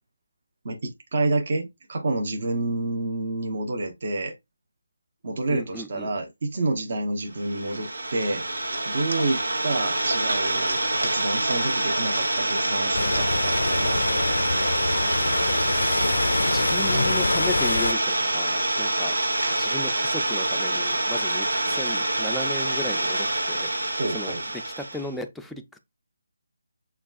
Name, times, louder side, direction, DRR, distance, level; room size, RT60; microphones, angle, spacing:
voice 1, 0.6-4.3 5.2-8.4 8.9-14.2 24.0-24.4, right 2 dB, 50° right, 0.8 m, -28 dB
voice 2, 5.5-6.1 16.1-16.2 16.5-19.2 19.5-23.7 24.1-25.8, left 1 dB, ahead, 0.3 m, -36 dB
Idling, 7.4-25.1, right 2 dB, 85° right, 1.0 m, -26 dB
sound 1, 12.9-17.9, left 3 dB, 80° left, 0.3 m, -26 dB
6.9 x 2.4 x 2.4 m
figure-of-eight pair, 165°, 0 cm